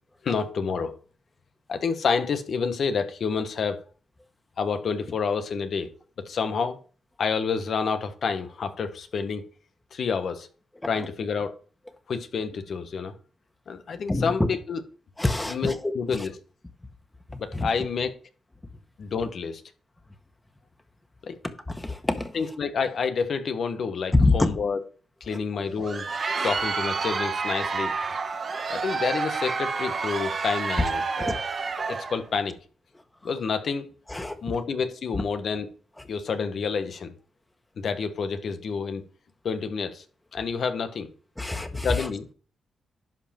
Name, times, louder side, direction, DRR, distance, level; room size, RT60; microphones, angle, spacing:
voice 1, 0.2-0.9 1.7-3.8 4.6-5.9 6.2-6.8 7.2-9.4 9.9-10.5 10.8-11.5 12.1-13.1 13.7-14.8 15.5-16.3 17.4-18.1 19.0-19.6 21.2-21.4 22.3-24.8 25.2-26.0 26.4-27.9 28.7-31.3 31.9-32.5 33.2-33.9 34.4-35.7 36.1-37.1 37.8-39.0 39.4-40.0 40.3-41.1 41.8-42.3, left 5 dB, 65° left, 1.3 m, -28 dB
voice 2, 14.1-14.5 15.2-16.3 17.3-17.7 21.7-22.3 24.1-24.5 25.3-25.4 26.4-26.5 31.2-31.4 34.1-34.4 35.1-35.2 41.4-42.1, left 2 dB, 15° left, 1.6 m, -26 dB
Crowd, 25.7-32.2, right 4 dB, 50° right, 1.2 m, -29 dB
11.0 x 5.1 x 4.5 m
supercardioid pair, 55°, 0 cm